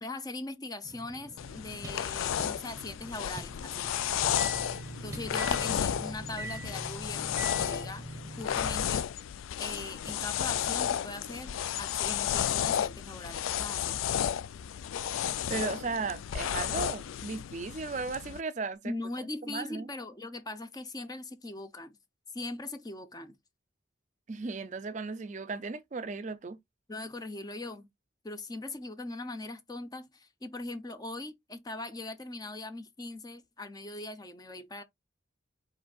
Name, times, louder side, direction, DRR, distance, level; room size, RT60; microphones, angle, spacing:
voice 1, 0.0-3.9 5.0-8.1 8.4-9.0 9.6-14.0 18.8-22.0 22.3-23.3 26.9-27.9 28.2-34.8, left 2 dB, 20° left, 0.6 m, -40 dB
sound 1, 0.8-9.0 10.1-10.2, right 2 dB, 15° right, 0.9 m, -43 dB
sound 2, 1.4-18.4, left 9 dB, 85° left, 0.3 m, -33 dB
voice 2, 15.5-18.9 19.5-19.9 24.3-26.6, right 4 dB, 35° right, 0.4 m, -36 dB
5.2 x 4.4 x 2.3 m
head